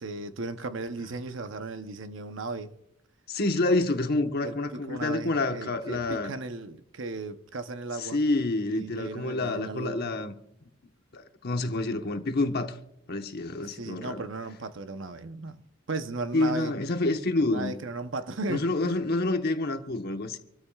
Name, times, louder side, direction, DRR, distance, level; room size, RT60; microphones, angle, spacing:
voice 1, 0.0-2.7 4.4-8.2 8.7-10.1 13.7-15.6 15.9-16.7 17.4-19.0, right 3 dB, 60° right, 0.8 m, -36 dB
voice 2, 3.3-6.3 8.0-10.3 11.1-12.8 13.1-14.3 16.3-17.7 18.5-20.4, left 2 dB, 45° left, 1.1 m, -28 dB
26.5 x 13.0 x 2.4 m
head